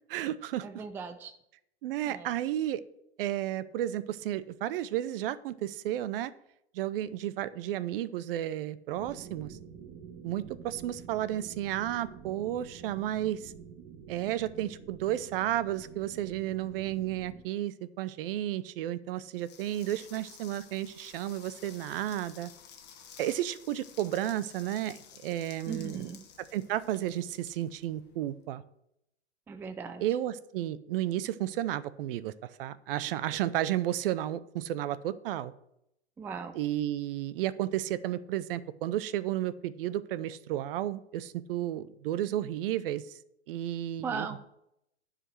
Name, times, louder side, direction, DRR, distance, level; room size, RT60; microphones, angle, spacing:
voice 1, 0.1-0.7 1.8-2.8 3.2-6.3 6.7-9.6 10.2-13.5 14.1-22.5 23.2-26.1 26.5-28.6 30.0-32.3 32.6-35.5 36.5-43.0 43.5-44.3, right 13 dB, 55° right, 16 dB, 0.6 m, -32 dB
voice 2, 0.6-1.3 2.1-2.3 25.7-26.2 29.5-30.0 36.2-36.6 44.0-44.4, right 5 dB, 5° right, 9 dB, 0.4 m, -38 dB
sound 1, 9.0-17.4, right 7 dB, 35° right, 1.4 m, -48 dB
sound 2, 19.4-28.3, left 8 dB, 30° left, 1.3 m, -53 dB
9.8 x 5.0 x 6.3 m, 0.79 s
hypercardioid pair, 115°, 34 cm